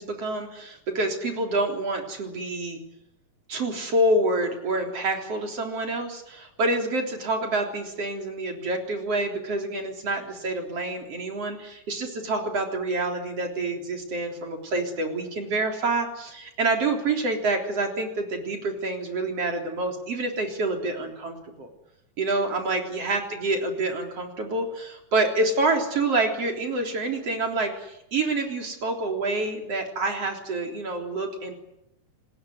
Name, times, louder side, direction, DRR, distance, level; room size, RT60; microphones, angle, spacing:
voice 1, 0.0-2.8 3.5-21.7 22.2-31.5, right 2 dB, 45° right, 3 dB, 4.6 m, -27 dB
26.5 x 20.5 x 9.6 m, 0.84 s
omnidirectional pair, 3.7 m